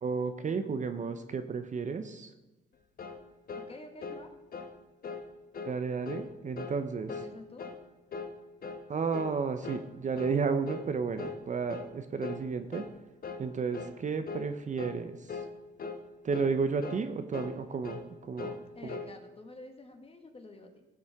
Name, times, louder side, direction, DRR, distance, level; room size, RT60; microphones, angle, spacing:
voice 1, 0.0-2.3 5.6-7.1 8.9-12.8 13.4-15.4 16.2-18.6 18.8-19.0, right 5 dB, 40° right, 9 dB, 0.7 m, -32 dB
sound 1, 3.0-3.2 3.5-3.7 4.0-4.2 4.5-4.7 5.0-5.3 5.5-5.8 6.1-6.3 6.6-6.8 7.1-7.3 7.6-7.8 8.1-8.3 8.6-8.8 9.1-9.4 9.6-9.9 10.2-10.4 10.7-10.9 11.2-11.4 11.7-11.9 12.2-12.4 12.7-12.9 13.2-13.5 13.7-14.0 14.3-14.5 14.8-15.0 15.3-15.5 15.8-16.0 16.3-16.6 16.8-17.0 17.3-17.6 17.8-18.1 18.4-18.6 18.9-19.1, left 4 dB, 45° left, 1.2 m, -40 dB
voice 2, 3.6-4.3 7.1-7.7 18.7-20.9, left 2 dB, 30° left, 5 dB, 1.7 m, -49 dB
16.5 x 7.2 x 3.6 m, 1.1 s
cardioid pair, 90°, 20 cm